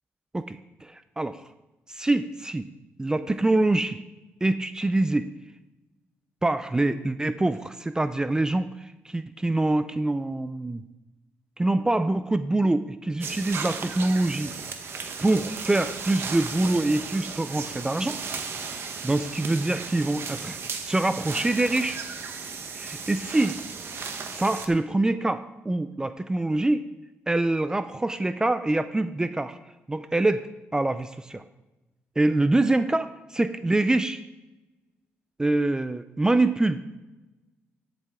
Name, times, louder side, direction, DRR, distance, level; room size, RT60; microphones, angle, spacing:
voice 1, 0.3-1.4 1.9-2.7 3.0-4.0 4.4-5.3 6.4-10.8 11.6-14.5 15.2-18.2 19.0-20.6 20.8-22.0 22.7-23.6 24.3-26.9 27.3-29.6 29.9-31.4 32.2-33.1 33.3-34.2 35.4-36.8, right 2 dB, 15° right, 11 dB, 0.5 m, -25 dB
sound 1, 13.2-24.7, right 5 dB, 55° right, 1.2 m, -35 dB
14.0 x 7.5 x 3.7 m, 1.1 s
cardioid pair, 85°, 5 cm